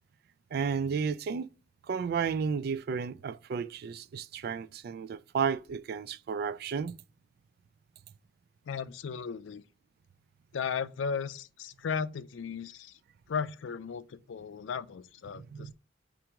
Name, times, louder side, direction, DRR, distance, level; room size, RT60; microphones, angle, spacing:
voice 1, 0.5-1.5 1.9-7.0 15.3-15.7, right 6 dB, 55° right, 0.3 m, -32 dB
voice 2, 8.7-9.6 10.5-13.0 13.3-15.7, left 6 dB, 80° left, 0.4 m, -36 dB
5.8 x 2.6 x 3.5 m
head